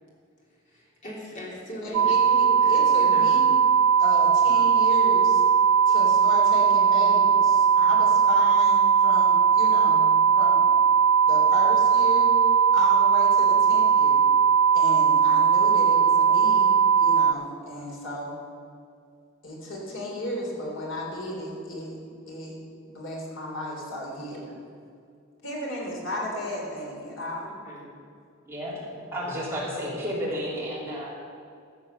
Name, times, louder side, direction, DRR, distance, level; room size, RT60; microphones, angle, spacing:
voice 1, 0.5-3.5 27.4-27.8 28.7-29.0, left 1 dB, 40° left, -5 dB, 3.4 m, -40 dB
voice 2, 1.8-3.5 4.0-5.4 5.9-10.1 10.3-10.6 11.2-12.3 12.7-14.2 14.7-18.3 19.4-22.0 22.3-22.6 22.8-24.5 25.4-27.5, left 1 dB, 65° left, -2 dB, 3.2 m, -33 dB
sound 1, 1.9-17.3, right 7 dB, 80° right, 0.3 m, -19 dB
voice 3, 29.1-31.1, equal, 15° right, -7 dB, 3.1 m, -31 dB
14.5 x 7.4 x 6.7 m, 2.3 s
head